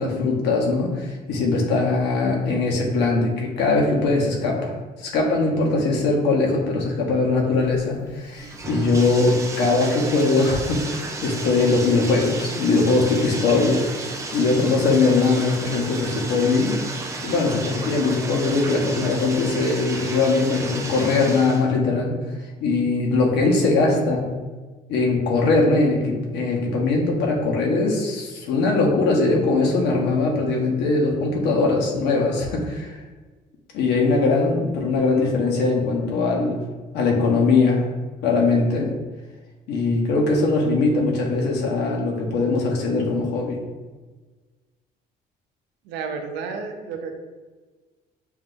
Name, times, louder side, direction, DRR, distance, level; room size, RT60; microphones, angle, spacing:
voice 1, 0.0-13.8 14.3-16.8 17.2-22.2 22.6-24.2 24.9-33.0 33.7-36.6 36.9-37.9 38.2-38.9 39.7-43.6, left 3 dB, 80° left, -1 dB, 1.0 m, -21 dB
Bathtub (filling or washing), 7.6-21.6, right 2 dB, 20° right, 0.5 m, -33 dB
voice 2, 45.8-47.1, right 5 dB, 90° right, 5 dB, 0.6 m, -31 dB
5.8 x 2.6 x 2.6 m, 1.3 s
cardioid pair, 110°, 17 cm